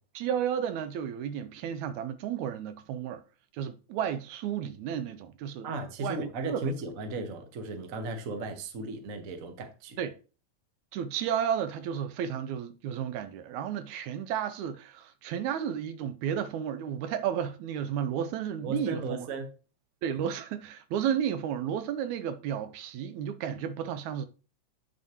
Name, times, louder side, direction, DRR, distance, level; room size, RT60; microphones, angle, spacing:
voice 1, 0.2-3.2 3.5-5.7 6.0-6.7 10.0-10.1 10.9-19.3 20.0-24.3, right 9 dB, 85° right, 2.0 m, -32 dB
voice 2, 5.6-10.1 18.6-19.5, right 2 dB, 60° right, 0.8 m, -36 dB
8.8 x 6.3 x 3.0 m
omnidirectional pair, 3.3 m